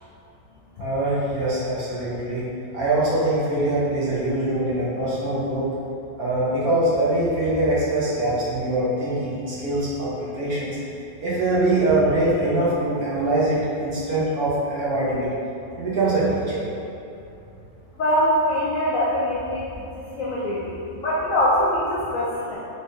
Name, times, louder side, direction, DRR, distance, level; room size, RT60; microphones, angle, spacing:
voice 1, 0.8-2.5 2.7-5.7 6.2-10.8 11.2-15.3 15.7-16.7, right 1 dB, 60° right, -8 dB, 1.2 m, -23 dB
voice 2, 18.0-19.6 20.0-22.6, equal, 80° left, -6 dB, 0.7 m, -23 dB
4.0 x 3.4 x 2.6 m, 2.7 s
omnidirectional pair, 2.0 m